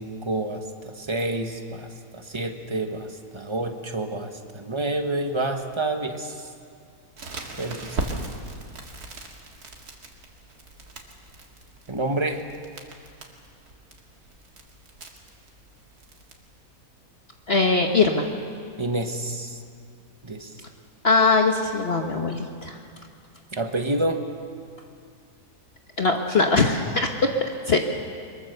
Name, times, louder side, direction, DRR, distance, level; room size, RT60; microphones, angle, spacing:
voice 1, 0.0-1.9 2.1-6.5 7.6-8.2 11.9-12.4 18.8-19.6 20.2-20.5 23.5-24.2, right 2 dB, 20° right, 5 dB, 1.3 m, -28 dB
Crackle, 7.2-16.3, right 2 dB, 80° right, 2.6 m, -39 dB
voice 2, 17.5-18.3 21.0-22.8 26.0-27.3 27.7-27.8, left 3 dB, 45° left, 3 dB, 1.3 m, -21 dB
23.0 x 22.5 x 6.7 m, 2.2 s
omnidirectional pair, 1.6 m